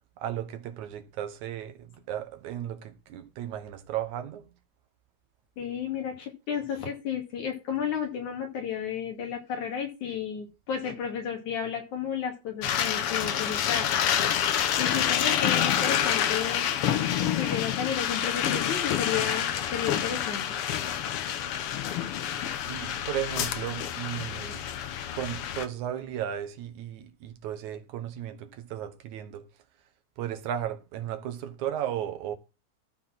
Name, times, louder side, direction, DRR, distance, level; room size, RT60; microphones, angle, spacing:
voice 1, 0.2-4.5 22.3-24.6 25.1-29.5 30.2-32.4, right 10 dB, 80° right, 2.5 m, -35 dB
voice 2, 5.6-13.9 14.8-16.7 17.4-20.5, left 8 dB, 85° left, 3.8 m, -32 dB
sound 1, 12.6-25.7, left 10 dB, 70° left, 1.4 m, -28 dB
13.0 x 4.3 x 5.8 m
omnidirectional pair, 3.3 m